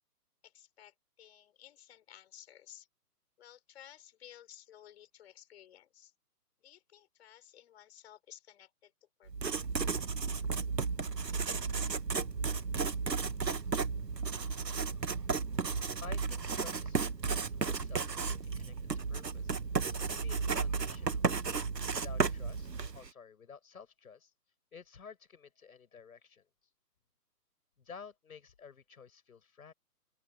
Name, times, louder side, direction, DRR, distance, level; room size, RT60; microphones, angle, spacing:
voice 1, 0.4-2.9 3.4-6.1 6.6-8.9 9.2-9.6, left 11 dB, 40° left, 7.1 m, -56 dB
Writing, 9.3-23.1, right 5 dB, 85° right, 1.6 m, -34 dB
voice 2, 16.0-19.6 20.1-21.3 21.9-24.3 24.7-26.5 27.8-29.7, left 6 dB, 60° left, 7.5 m, -52 dB
open air
figure-of-eight pair, 140°, 48 cm